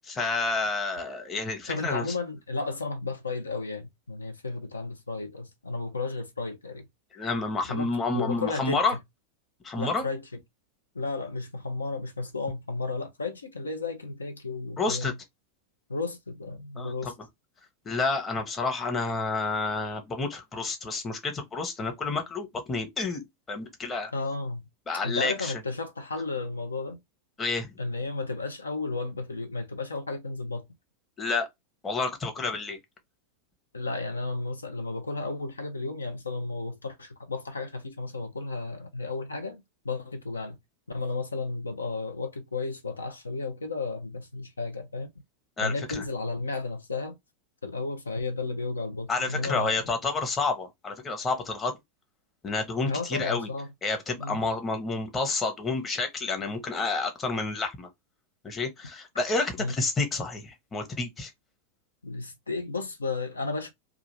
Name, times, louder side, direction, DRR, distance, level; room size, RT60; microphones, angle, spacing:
voice 1, 0.1-2.0 7.1-9.0 9.6-10.0 14.8-15.1 16.8-17.1 17.8-24.1 24.9-25.5 27.4-27.8 31.2-31.5 31.8-32.8 45.6-46.0 49.1-51.7 52.4-53.5 53.8-57.9 58.4-61.3, left 3 dB, 20° left, 0.9 m, -29 dB
voice 2, 1.7-6.9 7.7-7.9 8.1-8.8 9.7-10.2 10.9-15.1 15.9-17.1 24.1-24.7 25.0-27.0 27.8-30.6 33.7-40.6 40.9-45.1 45.6-47.2 47.6-49.8 52.9-53.7 54.2-54.4 59.6-59.7 62.0-63.7, left 3 dB, 75° left, 0.7 m, -33 dB
2.4 x 2.3 x 3.1 m
figure-of-eight pair, 90°, 0 cm